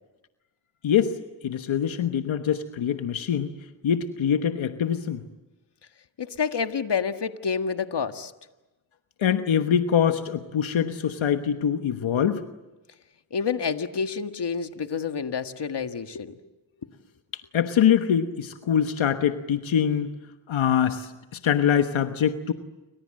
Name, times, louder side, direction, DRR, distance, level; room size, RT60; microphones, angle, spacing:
voice 1, 0.8-1.2 1.4-3.5 3.8-5.2 9.2-12.4 17.5-20.1 20.5-22.5, left 8 dB, 90° left, 7 dB, 1.3 m, -24 dB
voice 2, 6.2-8.3 13.3-16.3, left 6 dB, 60° left, 8 dB, 1.8 m, -28 dB
29.5 x 25.0 x 7.7 m, 1.1 s
cardioid pair, 45°, 45 cm